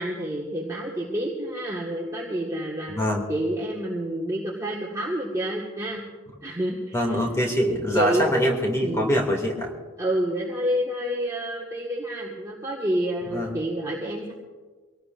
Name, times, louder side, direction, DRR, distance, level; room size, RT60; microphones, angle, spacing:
voice 1, 0.0-3.0 3.3-6.0 6.4-7.2 7.9-8.3 8.8-9.2 10.0-14.3, equal, 15° right, -5 dB, 1.7 m, -28 dB
voice 2, 2.9-3.3 6.9-9.7 13.3-13.5, equal, 15° left, 0 dB, 2.5 m, -24 dB
24.0 x 18.0 x 2.6 m, 1.4 s
head